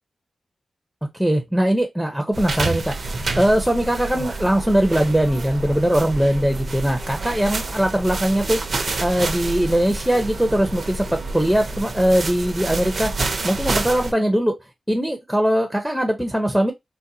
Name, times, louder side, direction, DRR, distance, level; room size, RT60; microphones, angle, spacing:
voice 1, 1.1-14.5 14.9-16.7, right 1 dB, ahead, 0.6 m, -21 dB
sound 1, 2.3-14.1, right 3 dB, 60° right, 0.6 m, -28 dB
3.9 x 2.1 x 2.7 m
cardioid pair, 70°, 0 cm